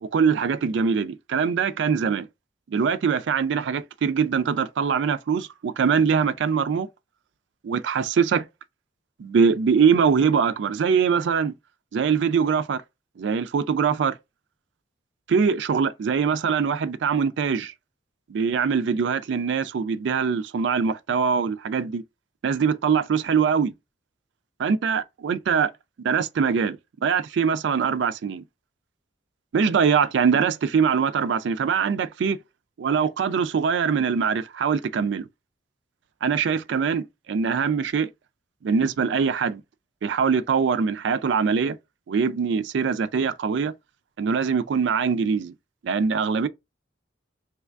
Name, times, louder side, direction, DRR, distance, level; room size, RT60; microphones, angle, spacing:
voice 1, 0.0-2.3 2.7-6.9 7.6-8.4 9.2-11.5 11.9-12.8 13.2-14.2 15.3-17.7 18.3-22.0 22.4-23.7 24.6-25.7 26.0-26.8 27.0-28.4 29.5-32.4 32.8-35.3 36.2-38.1 38.6-39.6 40.0-41.8 42.1-43.7 44.2-45.5 45.8-46.5, right 6 dB, 75° right, 0.3 m, -23 dB
3.3 x 3.1 x 2.4 m
head